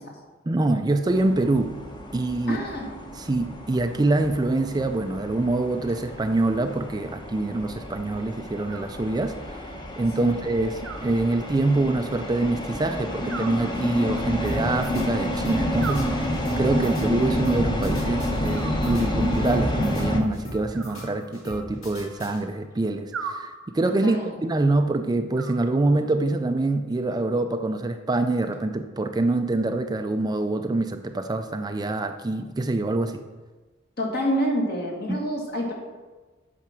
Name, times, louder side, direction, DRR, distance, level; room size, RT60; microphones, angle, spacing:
voice 1, 0.5-1.8 2.1-2.6 3.1-9.6 10.0-33.2 35.1-35.2, right 2 dB, 20° right, 7 dB, 0.4 m, -25 dB
sound 1, 1.1-20.2, left 1 dB, 20° left, 1.0 m, -29 dB
voice 2, 2.5-2.9 10.2-10.3 24.0-24.3 34.0-35.7, equal, 50° left, -1 dB, 2.1 m, -27 dB
Animal, 8.7-9.6 10.8-11.8 13.3-14.4 15.8-16.8 18.5-19.4 20.7-21.8 23.1-24.0 25.3-26.3, right 5 dB, 80° right, 0.9 m, -40 dB
sound 2, 14.4-22.8, equal, 80° left, 3.2 m, -42 dB
8.7 x 5.9 x 6.0 m, 1.3 s
head